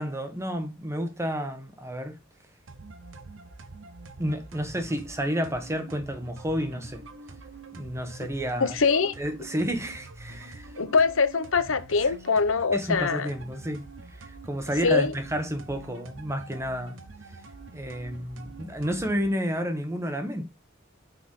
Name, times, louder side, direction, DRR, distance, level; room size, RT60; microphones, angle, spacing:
voice 1, 0.0-2.2 4.2-7.0 7.7-8.8 9.2-10.7 12.7-17.0 17.7-20.4, equal, 15° right, 1.2 m, -31 dB
sound 1, 2.7-19.3, right 2 dB, 70° right, 1.0 m, -46 dB
voice 2, 8.6-9.1 10.8-13.3 14.8-15.1, left 4 dB, 80° left, 0.9 m, -23 dB
6.5 x 5.6 x 3.7 m
head